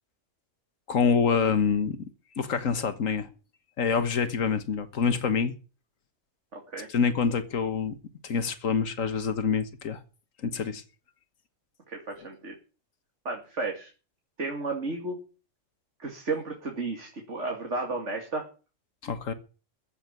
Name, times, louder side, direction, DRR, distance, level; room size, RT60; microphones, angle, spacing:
voice 1, 0.9-2.0 2.4-3.3 3.8-5.5 6.9-7.9 8.2-10.0 10.4-10.8 19.0-19.3, left 6 dB, 90° left, 1.7 m, -26 dB
voice 2, 6.5-6.9 11.9-12.5 13.2-13.9 14.4-15.2 16.0-18.5, right 3 dB, 65° right, 2.8 m, -33 dB
15.0 x 7.1 x 9.6 m
omnidirectional pair, 1.3 m